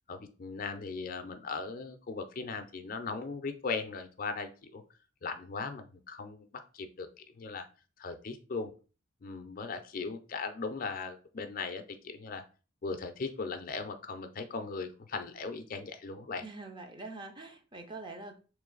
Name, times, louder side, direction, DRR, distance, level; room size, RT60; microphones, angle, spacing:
voice 1, 0.1-4.8 5.2-7.7 8.0-8.7 9.2-12.4 12.8-16.4, left 4 dB, 45° left, 8 dB, 0.5 m, -38 dB
voice 2, 16.4-18.4, right 3 dB, 25° right, 5 dB, 0.6 m, -44 dB
3.4 x 3.1 x 3.8 m, 0.35 s
head